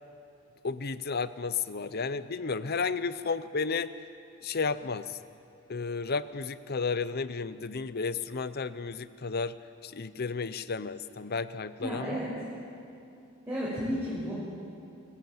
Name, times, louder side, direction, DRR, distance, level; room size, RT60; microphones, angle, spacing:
voice 1, 0.6-3.9 4.4-5.2 5.7-9.5 9.8-12.2, left 4 dB, 50° left, 14 dB, 0.8 m, -32 dB
voice 2, 11.8-12.3 13.5-14.3, equal, 10° right, -9 dB, 6.6 m, -32 dB
28.5 x 17.0 x 7.9 m, 2.6 s
head